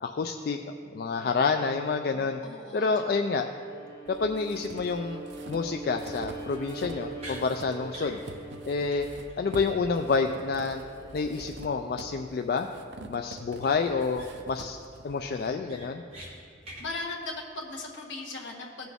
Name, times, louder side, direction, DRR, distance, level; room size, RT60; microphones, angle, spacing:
voice 1, 0.0-0.6 0.9-2.4 2.7-3.5 4.1-5.2 5.5-8.2 8.6-9.1 9.4-10.8 11.1-12.7 13.1-14.8 15.0-16.0, left 4 dB, 50° left, 5 dB, 0.3 m, -28 dB
voice 2, 1.2-1.6 2.1-2.9 16.8-18.9, left 2 dB, 75° left, -1 dB, 1.5 m, -38 dB
Bowed string instrument, 3.3-11.7, right 3 dB, 30° left, 2.7 m, -43 dB
sound 1, 4.1-7.1 7.3-15.5, right 2 dB, 65° right, 0.6 m, -46 dB
sound 2, 7.2-7.4 7.9-8.2 8.5-8.6 8.9-9.0 9.3-9.4 13.6-13.7 14.1-14.5 14.9-15.0 15.4-16.3 16.6-16.8, right 1 dB, 30° right, 1.8 m, -44 dB
16.0 x 6.0 x 3.5 m, 2.3 s
head